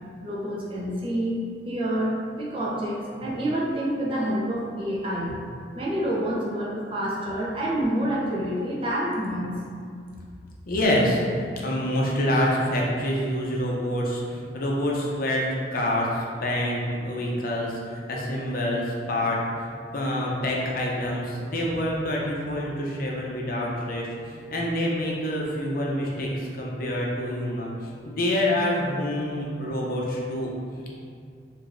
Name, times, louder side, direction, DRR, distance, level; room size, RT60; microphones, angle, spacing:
voice 1, 0.2-5.4 5.7-9.5, right 1 dB, 30° right, -5 dB, 0.6 m, -28 dB
voice 2, 10.7-30.9, left 1 dB, 50° left, -3 dB, 0.6 m, -27 dB
4.8 x 2.6 x 2.5 m, 2.2 s
head